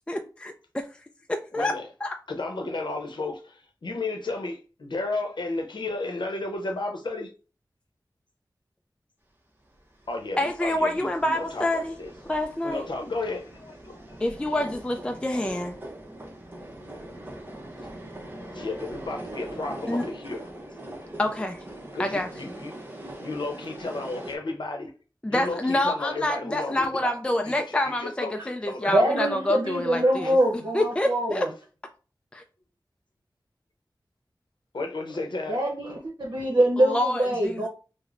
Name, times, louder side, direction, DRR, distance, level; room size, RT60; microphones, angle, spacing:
voice 1, 0.1-0.9 1.3-1.7 2.0-2.2 10.4-12.0 12.3-12.9 14.2-15.8 19.9-20.0 21.2-21.7 22.0-22.6 25.2-30.4 30.7-31.5 32.3-32.4 36.8-37.7, left 1 dB, 15° left, 0.3 m, -27 dB
voice 2, 1.5-1.9 2.3-7.3 10.1-12.1 12.6-14.2 15.3-15.4 17.1-17.9 18.3-20.4 21.9-22.7 23.2-24.9 25.3-27.2 27.5-29.3 30.2-30.3 34.7-35.6, left 2 dB, 80° left, 0.7 m, -33 dB
sound 1, 10.0-24.4, right 1 dB, 25° right, 0.8 m, -42 dB
voice 3, 28.8-31.5 35.5-37.7, right 1 dB, 65° right, 0.8 m, -24 dB
4.8 x 2.1 x 2.5 m
wide cardioid pair, 65°, 8 cm